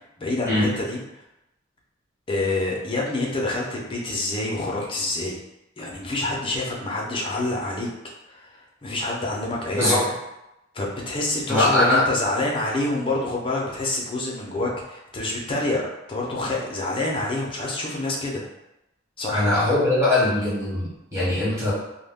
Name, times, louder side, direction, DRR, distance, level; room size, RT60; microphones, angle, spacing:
voice 1, 0.2-1.0 2.3-5.4 5.8-7.9 8.3-10.1 10.7-18.4 19.2-19.4, left 2 dB, 25° left, -3 dB, 0.5 m, -27 dB
voice 2, 9.7-10.0 11.5-12.1 19.3-21.7, left 1 dB, 15° right, -9 dB, 1.1 m, -21 dB
2.2 x 2.1 x 3.4 m, 0.91 s
head